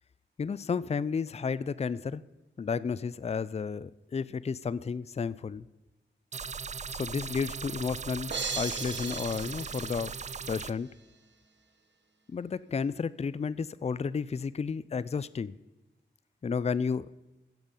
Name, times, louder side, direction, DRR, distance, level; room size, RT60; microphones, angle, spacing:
voice 1, 0.4-2.2 2.6-5.7 6.9-10.1 10.5-10.9 12.3-15.5 16.4-17.1, left 5 dB, 35° left, 17 dB, 0.4 m, -32 dB
sound 1, 6.3-10.7, right 5 dB, 35° right, 0.4 m, -39 dB
sound 2, 8.3-10.6, right 4 dB, 65° right, 1.3 m, -37 dB
15.0 x 7.3 x 5.3 m, 1.0 s
wide cardioid pair, 65°, 20 cm